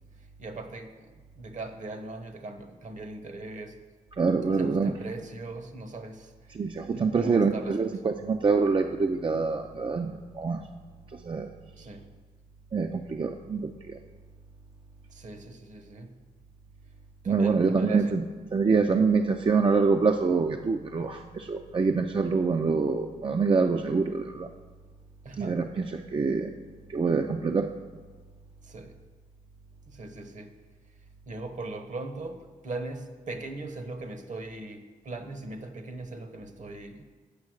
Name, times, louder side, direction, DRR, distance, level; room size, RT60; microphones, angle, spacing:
voice 1, 0.2-3.8 4.5-6.5 6.8-8.0 11.8-12.1 15.1-16.2 17.2-18.2 25.2-25.6 28.6-29.0 29.9-30.6 31.3-37.0, right 2 dB, 55° right, 7 dB, 1.0 m, -40 dB
voice 2, 4.2-5.1 6.5-10.6 11.2-11.5 12.7-14.0 17.3-18.2 18.5-24.5 25.4-26.5 26.9-27.7, right 4 dB, 35° right, 5 dB, 0.5 m, -25 dB
8.5 x 5.6 x 6.3 m, 1.4 s
cardioid pair, 65°, 15 cm